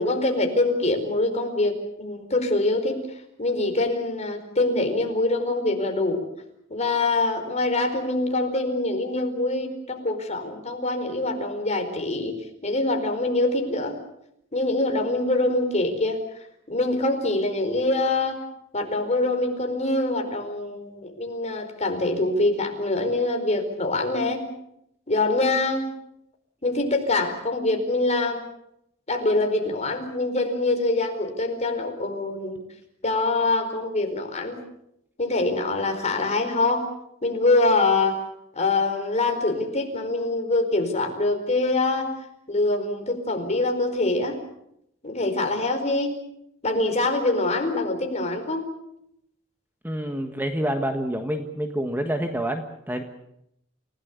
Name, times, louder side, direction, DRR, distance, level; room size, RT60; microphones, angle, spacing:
voice 1, 0.0-3.0 3.4-6.2 6.7-12.4 12.6-13.9 14.5-16.2 16.7-18.4 18.7-24.4 25.1-25.9 26.6-28.4 29.1-32.6 33.0-34.6 35.2-36.9 37.2-38.2 38.6-42.1 42.5-44.4 45.0-46.1 46.6-48.7, left 2 dB, 35° left, 4 dB, 4.7 m, -24 dB
voice 2, 49.8-53.0, right 1 dB, 10° right, 6 dB, 1.5 m, -27 dB
29.0 x 17.5 x 8.2 m, 0.77 s
head